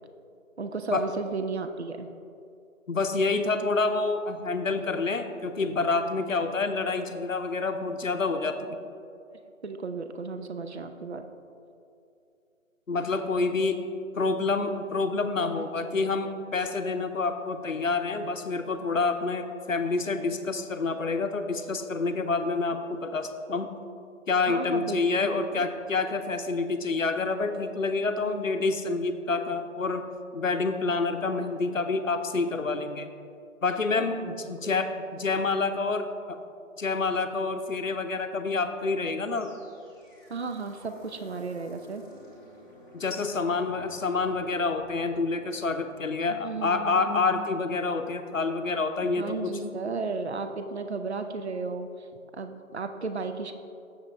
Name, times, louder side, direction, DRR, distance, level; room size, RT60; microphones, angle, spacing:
voice 1, 0.6-2.1 9.6-11.3 15.6-16.1 24.4-25.7 28.2-28.4 34.0-34.7 40.3-42.0 46.3-47.1 49.2-52.1 52.3-53.5, right 4 dB, 55° right, 8 dB, 0.5 m, -34 dB
voice 2, 2.9-8.8 12.9-13.8 14.1-23.7 24.3-30.0 30.3-33.1 33.6-36.4 36.8-39.5 42.9-49.7, left 3 dB, 70° left, 8 dB, 0.7 m, -28 dB
sound 1, 39.2-48.3, right 1 dB, 15° right, 1.6 m, -54 dB
7.6 x 7.0 x 3.4 m, 2.6 s
figure-of-eight pair, 165°, 41 cm